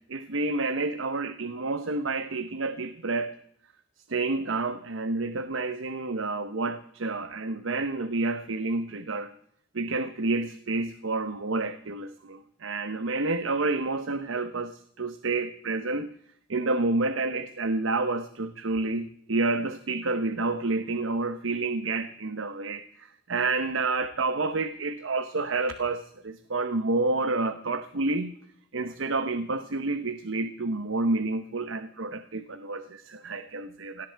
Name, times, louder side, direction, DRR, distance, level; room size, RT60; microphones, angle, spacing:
voice 1, 0.1-3.3 4.1-9.3 9.7-16.1 16.5-28.4 28.7-34.1, right 3 dB, 85° right, 10 dB, 0.9 m, -29 dB
17.5 x 17.5 x 4.6 m, 0.67 s
head